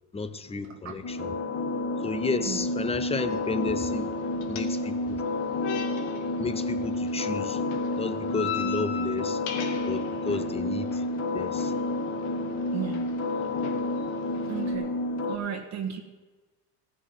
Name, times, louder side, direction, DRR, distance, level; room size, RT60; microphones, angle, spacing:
voice 1, 0.1-1.3 2.0-4.1 4.5-5.2 6.4-7.6 8.0-9.4 9.8-11.7, left 4 dB, 15° left, 13 dB, 0.7 m, -32 dB
voice 2, 0.6-1.0 1.5-1.6 2.4-2.6 12.7-13.0 14.5-14.9 15.2-16.0, right 8 dB, 40° right, 3 dB, 1.5 m, -34 dB
sound 1, 1.0-15.4, left 2 dB, 35° left, 1.1 m, -30 dB
sound 2, 3.3-14.7, left 8 dB, 85° left, 1.7 m, -41 dB
15.5 x 6.2 x 7.9 m, 1.2 s
supercardioid pair, 110°, 42 cm